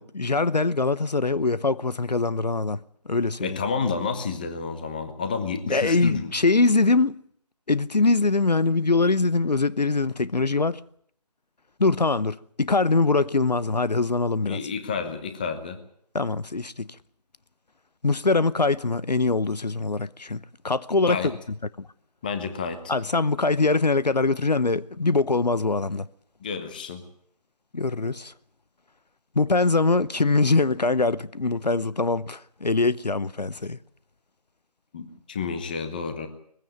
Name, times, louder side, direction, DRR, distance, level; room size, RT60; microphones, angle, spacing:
voice 1, 0.0-2.8 3.1-3.6 5.7-7.2 7.7-10.8 11.8-14.6 16.1-16.9 18.0-21.2 21.8-21.9 22.9-26.1 27.7-28.3 29.4-33.8, left 3 dB, 80° left, 0.8 m, -23 dB
voice 2, 3.4-6.3 14.4-15.8 21.1-21.3 22.2-22.9 26.4-27.0 34.9-36.3, left 5 dB, 15° left, 1.0 m, -30 dB
21.0 x 15.5 x 9.0 m
figure-of-eight pair, 160°, 21 cm